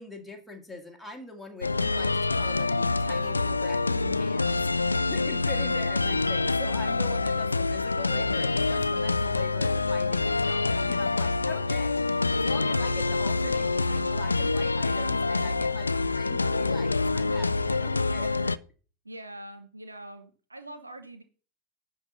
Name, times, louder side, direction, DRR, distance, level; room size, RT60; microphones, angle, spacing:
voice 1, 0.0-18.5, left 3 dB, 5° left, 0 dB, 1.6 m, -44 dB
sound 1, 1.6-18.6, left 3 dB, 80° left, 0.3 m, -26 dB
voice 2, 19.0-21.2, right 1 dB, 80° right, 8 dB, 1.0 m, -43 dB
10.5 x 3.9 x 6.7 m, 0.38 s
figure-of-eight pair, 90°, 0 cm